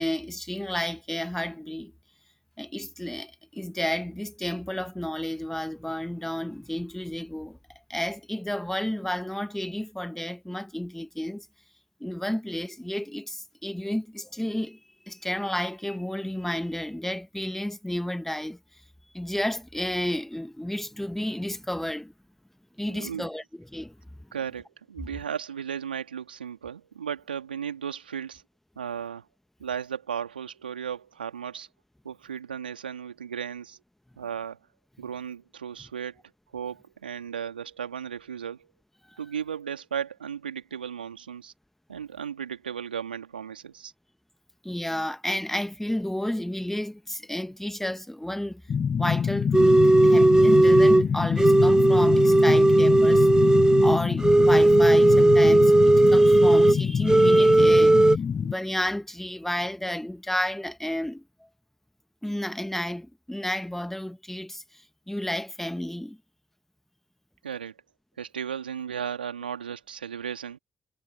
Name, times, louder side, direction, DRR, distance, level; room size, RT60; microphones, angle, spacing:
voice 1, 0.0-1.9 2.6-7.6 7.9-11.5 12.0-14.8 15.1-18.6 19.1-22.1 22.8-23.9 39.1-39.2 44.6-48.6 49.0-53.3 53.8-61.2 62.2-66.2, left 1 dB, 5° left, 1.7 m, -31 dB
voice 2, 22.9-23.3 24.3-28.4 28.8-29.3 29.6-31.7 32.0-33.8 34.2-34.6 35.0-36.2 36.5-38.7 39.2-41.5 41.9-43.9 67.4-67.7 68.2-70.6, right 8 dB, 85° right, 2.5 m, -35 dB
sound 1, 48.7-58.5, left 7 dB, 45° left, 1.2 m, -26 dB
sound 2, 49.5-51.1 51.4-56.8 57.1-58.2, right 2 dB, 15° right, 0.9 m, -17 dB
figure-of-eight pair, 40°, 5 cm